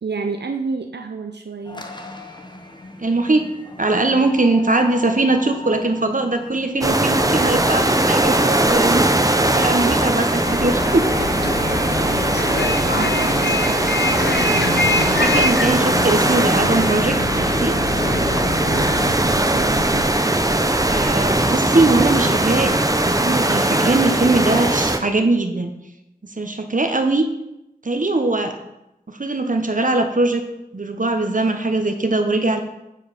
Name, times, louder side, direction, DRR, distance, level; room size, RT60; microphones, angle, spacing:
voice 1, 0.0-1.9 11.9-12.3 12.6-14.1 18.7-20.1, right 4 dB, 80° right, 5 dB, 0.5 m, -31 dB
sound 1, 1.6-11.8, left 1 dB, 25° left, 0.8 m, -39 dB
voice 2, 3.0-3.4 3.8-9.0 9.4-11.1 15.1-17.8 20.9-22.7 23.0-25.7 26.4-27.2 27.8-28.5 29.1-30.4 30.7-32.6, right 2 dB, 50° right, 6 dB, 0.9 m, -21 dB
sound 2, 6.8-25.0, right 1 dB, 20° right, 0.6 m, -19 dB
Bus, 10.4-19.1, left 2 dB, 85° left, 0.7 m, -25 dB
7.5 x 4.6 x 5.0 m, 0.89 s
wide cardioid pair, 45°, 17 cm